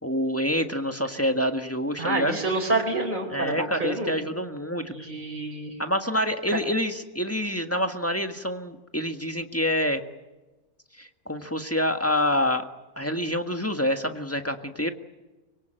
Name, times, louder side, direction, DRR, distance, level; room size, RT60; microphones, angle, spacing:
voice 1, 0.0-2.4 3.3-4.9 5.8-10.0 11.0-12.6 13.0-14.9, equal, 10° left, 6 dB, 1.6 m, -27 dB
voice 2, 2.0-4.1 4.9-5.7, right 2 dB, 30° right, 1 dB, 4.2 m, -28 dB
25.0 x 23.5 x 9.0 m, 1.1 s
omnidirectional pair, 1.6 m